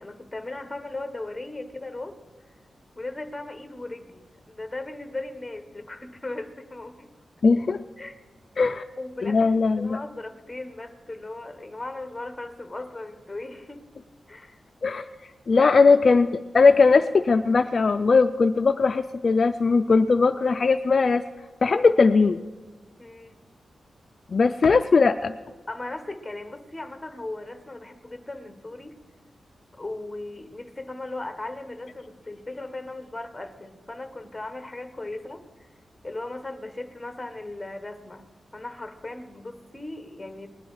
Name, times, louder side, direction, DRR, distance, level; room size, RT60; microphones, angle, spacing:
voice 1, 0.0-2.2 3.0-7.1 8.0-8.2 9.0-13.8 14.3-14.6 15.6-15.7 23.0-23.4 25.7-29.0 29.7-35.4 36.0-40.5, left 2 dB, 10° left, 7 dB, 1.0 m, -37 dB
voice 2, 7.4-7.8 8.6-8.9 9.2-10.0 14.8-15.1 15.5-21.2 21.6-22.4 24.3-25.3, left 4 dB, 45° left, 8 dB, 0.3 m, -19 dB
19.0 x 10.5 x 4.7 m, 1.3 s
wide cardioid pair, 145°, 0 cm